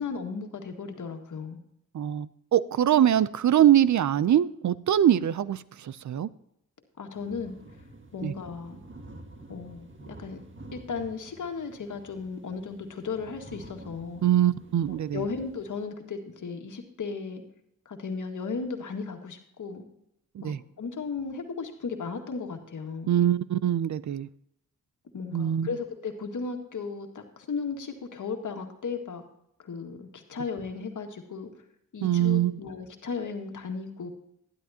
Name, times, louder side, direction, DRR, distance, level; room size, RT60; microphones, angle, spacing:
voice 1, 0.0-1.6 7.0-7.6 8.1-8.8 9.5-10.4 10.7-14.2 15.1-17.4 17.9-19.8 20.4-23.1 25.1-29.2 29.6-31.5 31.9-34.1, left 5 dB, 65° left, 4 dB, 1.9 m, -35 dB
voice 2, 1.9-6.3 8.2-8.3 14.2-15.2 20.4-20.6 23.1-24.3 25.3-25.7 32.0-32.6, right 11 dB, 60° right, 18 dB, 0.5 m, -23 dB
sound 1, 7.1-15.9, right 2 dB, 35° right, 1.7 m, -49 dB
12.0 x 11.5 x 2.8 m, 0.76 s
cardioid pair, 65°, 33 cm